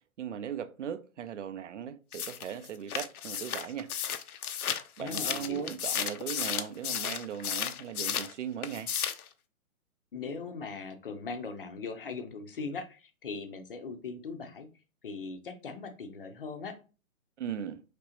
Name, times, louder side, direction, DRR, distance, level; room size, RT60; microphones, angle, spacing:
voice 1, 0.2-3.9 5.0-8.9 17.4-17.8, right 9 dB, 55° right, 0.5 m, -38 dB
sound 1, 2.1-8.3 8.6-9.3, left 8 dB, 85° left, 0.7 m, -34 dB
voice 2, 5.0-5.7 10.1-14.7 15.0-16.8, left 4 dB, 40° left, 0.6 m, -39 dB
5.0 x 3.2 x 2.9 m
hypercardioid pair, 170°, 42 cm